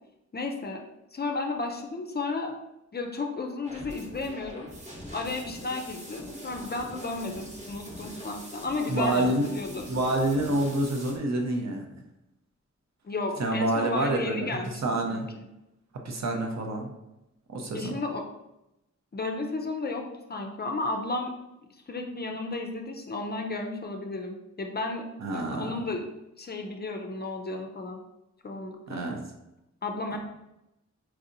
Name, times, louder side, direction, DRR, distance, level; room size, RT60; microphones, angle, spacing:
voice 1, 0.3-0.8 1.1-2.5 2.9-4.7 5.1-9.8 13.0-14.8 15.1-15.2 17.7-18.2 19.1-20.0 20.3-21.3 21.9-25.0 25.3-26.0 26.4-28.0 28.4-29.0 29.8-30.2, left 3 dB, 35° left, 3 dB, 0.4 m, -33 dB
sound 1, 3.6-11.2, equal, 25° right, 0.8 m, -43 dB
voice 2, 8.9-9.6 9.9-11.9 13.4-14.5 14.8-15.3 16.0-16.9 17.5-18.0 25.2-25.8 28.9-29.2 30.1-30.2, right 1 dB, 65° right, 2 dB, 0.7 m, -27 dB
4.6 x 2.7 x 2.5 m, 0.90 s
wide cardioid pair, 145°, 29 cm